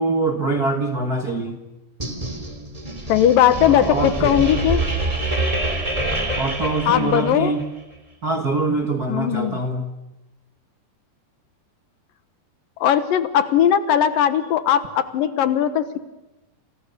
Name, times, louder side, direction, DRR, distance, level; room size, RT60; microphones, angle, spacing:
voice 1, 0.0-1.6 3.6-4.3 6.4-7.7 8.2-9.9, right 2 dB, 45° right, 3 dB, 1.3 m, -24 dB
sound 1, 2.0-7.6, right 2 dB, 10° right, 2.3 m, -26 dB
voice 2, 3.1-4.8 6.9-7.6 9.1-9.6 12.8-16.0, left 10 dB, 70° left, 11 dB, 2.8 m, -18 dB
29.0 x 28.5 x 6.8 m, 0.96 s
omnidirectional pair, 4.3 m